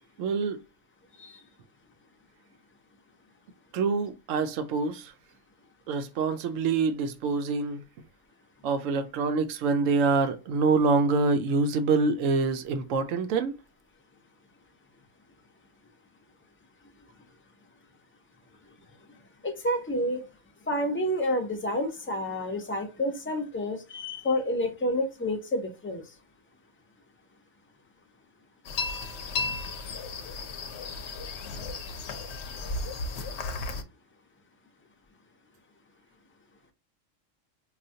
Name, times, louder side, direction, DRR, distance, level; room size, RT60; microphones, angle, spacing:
voice 1, 0.2-0.6 3.7-5.1 5.9-7.8 8.6-13.6, right 4 dB, 80° right, 1.0 m, -26 dB
voice 2, 19.4-20.2 20.7-26.0, left 1 dB, 15° left, 0.4 m, -29 dB
sound 1, 28.6-33.8, left 3 dB, 65° left, 0.8 m, -34 dB
4.9 x 2.2 x 2.6 m
omnidirectional pair, 1.3 m